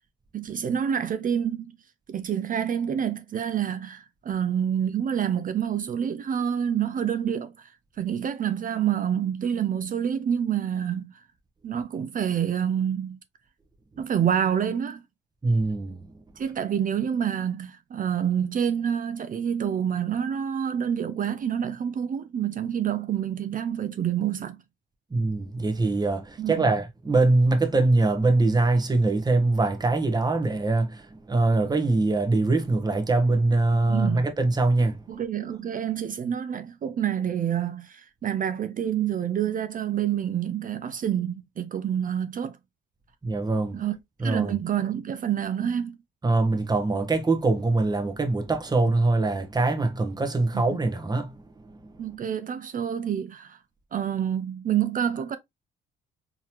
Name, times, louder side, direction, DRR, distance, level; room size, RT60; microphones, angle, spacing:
voice 1, 0.3-1.7 2.1-7.7 8.0-11.1 11.6-13.2 14.0-15.0 16.4-24.6 26.4-26.7 33.8-34.2 35.1-42.5 43.7-44.0 44.2-46.0 50.5-50.6 52.0-53.6 53.9-55.4, right 9 dB, 45° right, 0.5 m, -27 dB
voice 2, 15.4-16.0 25.1-35.0 43.2-43.7 44.2-44.5 46.2-51.3, right 2 dB, 20° right, 1.1 m, -23 dB
3.8 x 3.0 x 2.9 m
cardioid pair, 90°, 20 cm